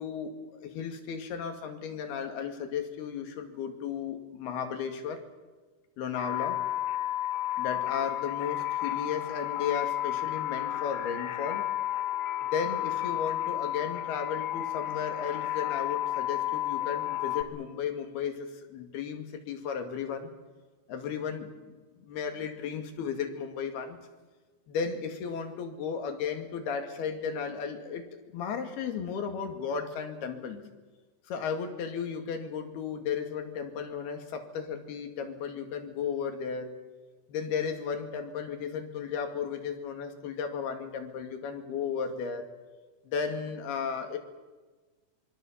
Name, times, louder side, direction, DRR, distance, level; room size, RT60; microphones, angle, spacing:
voice 1, 0.0-5.2 6.0-6.6 7.6-11.7 12.4-20.3 20.9-24.0 24.7-28.1 28.3-30.6 31.3-36.7 37.3-42.5 43.1-44.2, left 6 dB, 60° left, 5 dB, 3.9 m, -34 dB
sound 1, 6.2-17.4, left 13 dB, 85° left, 3.9 m, -32 dB
26.0 x 23.0 x 7.4 m, 1.3 s
omnidirectional pair, 5.4 m